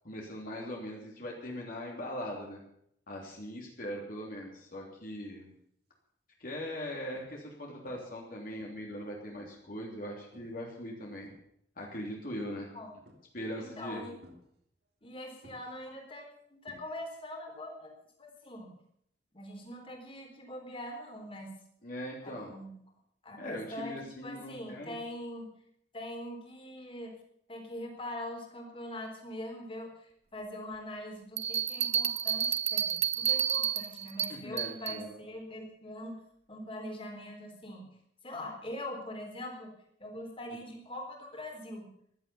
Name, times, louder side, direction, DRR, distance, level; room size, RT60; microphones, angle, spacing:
voice 1, 0.0-2.6 3.1-5.5 6.4-11.3 11.8-12.7 13.3-14.1 21.8-22.5 23.4-25.0 34.2-35.1, equal, 55° left, -1 dB, 3.3 m, -40 dB
sound 1, 5.5-5.8 6.4-6.5 7.1-7.6 7.8-8.3 8.6-9.7 10.3-10.7 11.0-11.9 13.0-13.6 14.2-15.1 15.4-17.3 17.6-18.0 20.1-20.2, equal, 65° right, 3.1 m, -59 dB
voice 2, 13.6-14.2 15.0-17.9 18.2-18.7 19.3-21.5 22.2-22.8 23.2-23.9 24.2-25.5 25.9-27.1 27.5-29.9 30.3-36.2 36.5-37.8 38.2-39.7 40.0-41.9, left 1 dB, 30° left, 2 dB, 3.8 m, -42 dB
sound 2, 31.4-35.0, right 9 dB, 40° right, 0.6 m, -30 dB
15.5 x 12.0 x 7.1 m, 0.71 s
head